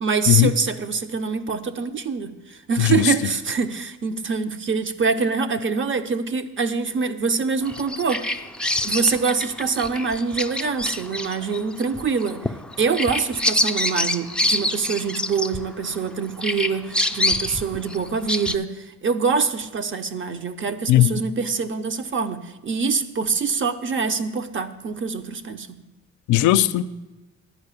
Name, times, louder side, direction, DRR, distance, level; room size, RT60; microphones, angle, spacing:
voice 1, 0.0-8.4 8.8-12.5 12.8-22.4 22.6-25.7, right 5 dB, 40° right, 0.8 m, -25 dB
Bird vocalization bird call bird song, 7.7-16.1 16.4-18.6, left 1 dB, 5° left, 0.4 m, -26 dB
voice 2, 26.3-26.8, left 14 dB, 80° left, 0.5 m, -17 dB
11.0 x 4.8 x 8.3 m
cardioid pair, 90°, 30 cm